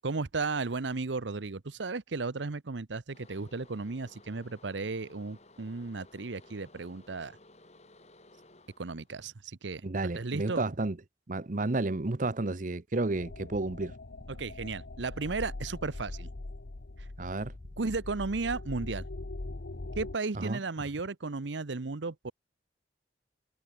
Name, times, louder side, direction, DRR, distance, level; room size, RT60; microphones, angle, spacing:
voice 1, 0.0-7.4 8.8-10.6 14.3-16.3 17.0-17.1 17.8-19.1 20.0-22.3, right 3 dB, 85° right, 0.9 m, -35 dB
sound 1, 3.1-9.3, left 2 dB, 40° left, 6.3 m, -58 dB
voice 2, 9.8-11.0 11.3-13.9 17.2-17.5 20.3-20.6, right 2 dB, 45° right, 0.8 m, -31 dB
sound 2, 13.1-20.1, left 2 dB, 70° left, 1.0 m, -42 dB
head